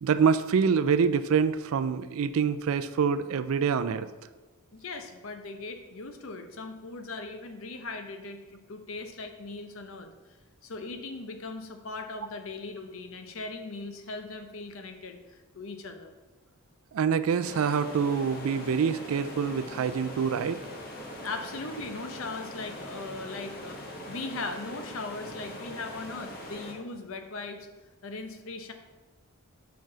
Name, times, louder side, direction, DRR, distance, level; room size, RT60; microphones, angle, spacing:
voice 1, 0.0-4.1 16.9-20.6, right 6 dB, 70° right, 13 dB, 0.4 m, -26 dB
voice 2, 4.7-10.1 10.6-16.1 21.2-23.8 24.1-27.7 28.0-28.7, left 3 dB, 65° left, 7 dB, 0.7 m, -39 dB
sound 1, 17.4-26.7, left 1 dB, 45° left, 1.0 m, -42 dB
4.6 x 4.6 x 6.0 m, 1.2 s
head